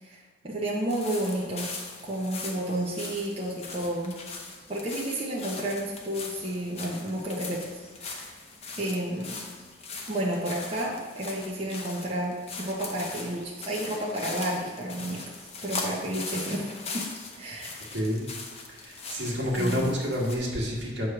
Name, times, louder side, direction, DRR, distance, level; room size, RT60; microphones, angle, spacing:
voice 1, 0.0-1.7 2.1-4.1 4.7-8.3 8.8-9.4 10.1-15.2 15.6-16.7 16.9-17.0 17.4-17.8 19.5-19.9, right 1 dB, 30° right, -5 dB, 1.0 m, -31 dB
sound 1, 0.9-20.4, left 3 dB, 35° left, 0.8 m, -40 dB
voice 2, 17.9-18.3 18.7-21.1, equal, 70° right, -4 dB, 1.8 m, -29 dB
8.4 x 3.2 x 5.9 m, 1.5 s
head